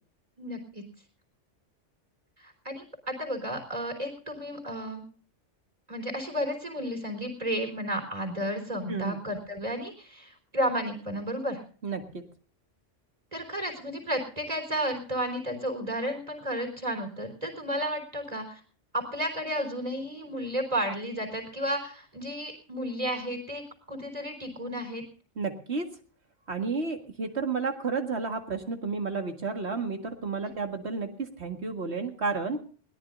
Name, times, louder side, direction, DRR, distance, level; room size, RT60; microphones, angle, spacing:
voice 1, 0.4-0.8 2.4-5.0 5.9-11.6 13.3-18.6 18.9-23.6 23.9-25.0 30.4-30.6, equal, 30° right, 4 dB, 4.0 m, -32 dB
voice 2, 11.8-12.2 25.4-25.9 26.5-32.6, right 4 dB, 60° right, 4 dB, 2.1 m, -31 dB
21.0 x 17.5 x 2.6 m, 0.41 s
omnidirectional pair, 1.3 m